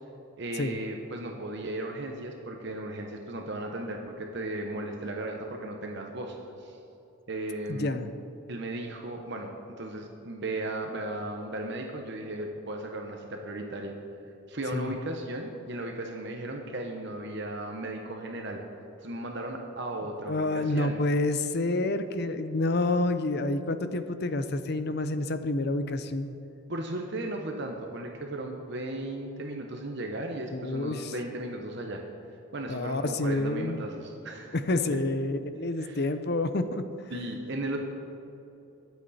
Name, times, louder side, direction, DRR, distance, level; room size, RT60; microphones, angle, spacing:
voice 1, 0.4-6.8 7.3-8.0 8.5-9.5 9.8-13.9 14.5-18.6 19.0-21.0 26.7-32.0 32.5-34.6 35.8-36.0 37.1-37.8, right 1 dB, 55° right, 2 dB, 1.1 m, -36 dB
voice 2, 7.7-8.1 14.7-14.9 20.3-26.3 30.5-31.1 32.7-33.8 34.5-36.8, left 2 dB, 50° left, 10 dB, 0.7 m, -28 dB
22.0 x 8.1 x 4.2 m, 2.9 s
head